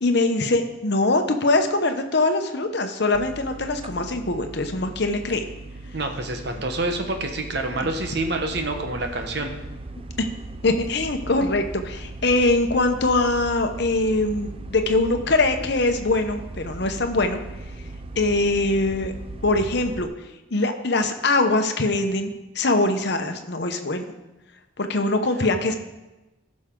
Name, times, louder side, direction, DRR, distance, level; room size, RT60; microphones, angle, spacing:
voice 1, 0.0-5.4 10.2-10.3 10.6-17.4 18.2-19.1 19.4-20.1 20.5-24.1 24.8-25.7, left 2 dB, 55° left, 6 dB, 0.9 m, -22 dB
sound 1, 3.1-20.0, right 2 dB, 25° right, 0.5 m, -38 dB
voice 2, 5.9-9.5, right 2 dB, 55° right, 5 dB, 1.1 m, -27 dB
14.5 x 6.4 x 3.8 m, 1.0 s
head